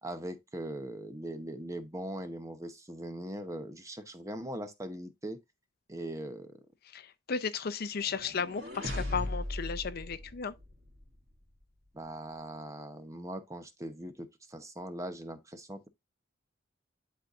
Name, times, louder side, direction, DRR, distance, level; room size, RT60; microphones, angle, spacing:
voice 1, 0.0-5.4 5.9-6.5 11.9-15.9, right 1 dB, 15° right, 0.8 m, -40 dB
voice 2, 6.9-10.5, left 5 dB, 50° left, 0.6 m, -34 dB
sound 1, 8.0-11.1, left 1 dB, 55° right, 2.3 m, -38 dB
11.0 x 4.1 x 2.4 m
head